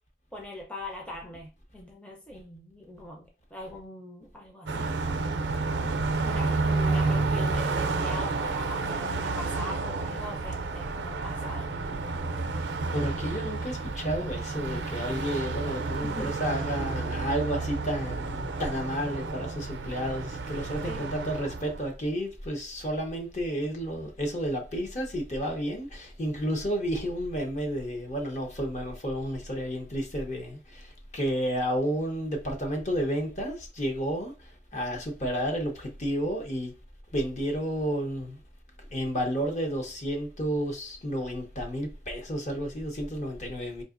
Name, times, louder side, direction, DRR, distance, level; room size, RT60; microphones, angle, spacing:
voice 1, 0.3-5.2 6.2-11.7 16.0-16.4 20.8-21.1, left 1 dB, 5° left, 0.5 m, -41 dB
Car passing by, 4.7-21.9, right 3 dB, 85° right, 0.4 m, -30 dB
voice 2, 12.9-36.7 37.1-38.4 38.9-43.8, equal, 40° left, 0.8 m, -31 dB
3.9 x 2.8 x 2.4 m
head